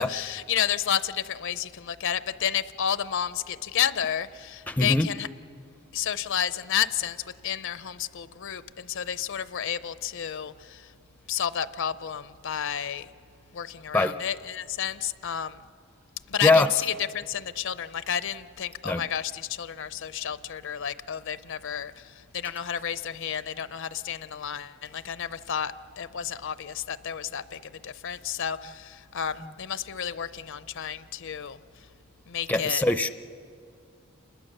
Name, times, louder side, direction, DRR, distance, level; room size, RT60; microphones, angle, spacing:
voice 1, 0.0-5.3 5.9-10.9 11.3-13.1 13.5-15.6 16.3-31.6 32.3-32.8, left 9 dB, 65° left, 14 dB, 0.6 m, -31 dB
voice 2, 4.7-5.1 13.9-14.1 16.4-16.7 18.8-19.0 32.5-33.1, left 2 dB, 10° left, 10 dB, 0.5 m, -22 dB
29.0 x 21.0 x 6.6 m, 2.4 s
head